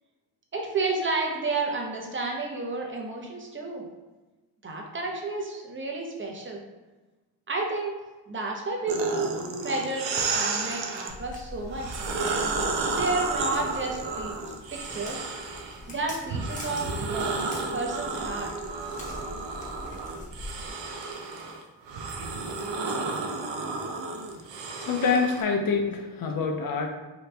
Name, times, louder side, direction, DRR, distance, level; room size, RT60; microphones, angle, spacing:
voice 1, 0.5-3.9 4.6-6.6 7.5-8.0 8.3-9.3 9.6-12.0 12.9-14.3 14.7-15.3 15.9-17.4 17.7-18.5, right 3 dB, 25° right, 0 dB, 0.8 m, -31 dB
sound 1, 8.9-11.1 11.7-15.8 16.3-25.4, right 3 dB, 70° right, 0.6 m, -32 dB
Walk footsteps, 11.1-20.7, left 1 dB, 15° left, 0.9 m, -43 dB
voice 2, 24.8-26.9, left 5 dB, 50° left, 4 dB, 0.6 m, -26 dB
2.9 x 2.4 x 3.3 m, 1.2 s
cardioid pair, 70°, 45 cm